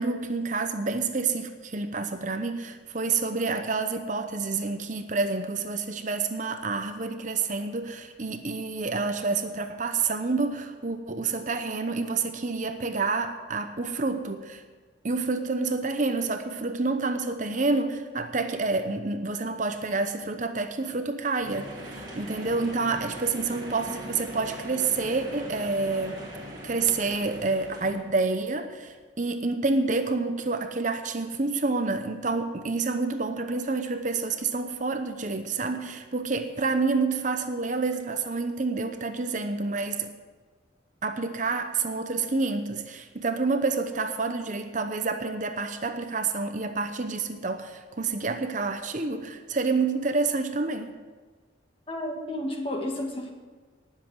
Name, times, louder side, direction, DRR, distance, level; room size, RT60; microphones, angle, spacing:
voice 1, 0.0-14.6 15.0-26.2 26.6-40.1 41.0-50.9, right 3 dB, 40° right, 8 dB, 0.8 m, -28 dB
sound 1, 21.4-28.0, right 1 dB, 20° right, 2.5 m, -41 dB
voice 2, 51.9-53.3, left 1 dB, 30° left, 2 dB, 1.9 m, -31 dB
19.0 x 7.6 x 6.2 m, 1.4 s
head